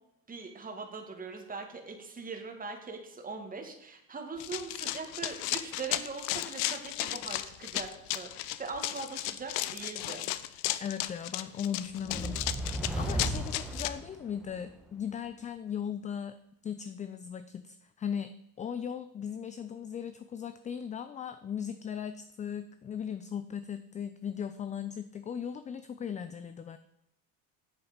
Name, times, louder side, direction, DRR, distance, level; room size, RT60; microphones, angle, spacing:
voice 1, 0.3-10.3, right 4 dB, 20° right, 3 dB, 1.8 m, -41 dB
Run, 4.4-13.9, left 15 dB, 70° left, 0.7 m, -34 dB
voice 2, 10.8-12.4 12.7-16.4 16.6-18.3 18.6-26.8, left 8 dB, 20° left, 11 dB, 0.4 m, -38 dB
sound 1, 12.0-14.7, right 1 dB, ahead, 1.3 m, -35 dB
8.1 x 7.1 x 5.1 m, 0.83 s
hypercardioid pair, 90°, 42 cm